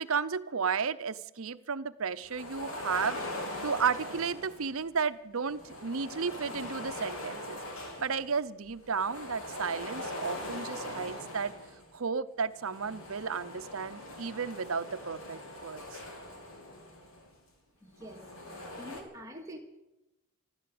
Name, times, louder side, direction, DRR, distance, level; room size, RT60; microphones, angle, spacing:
voice 1, 0.0-3.2 3.6-7.6 8.0-11.5 11.9-16.0, right 5 dB, 75° right, 14 dB, 0.7 m, -33 dB
sound 1, 2.2-4.8 5.4-8.3 8.7-11.9 12.5-17.3 17.9-19.0, left 1 dB, 75° left, 3.1 m, -41 dB
voice 2, 17.8-19.6, equal, 15° right, 1 dB, 2.2 m, -46 dB
15.0 x 12.0 x 7.8 m, 0.95 s
head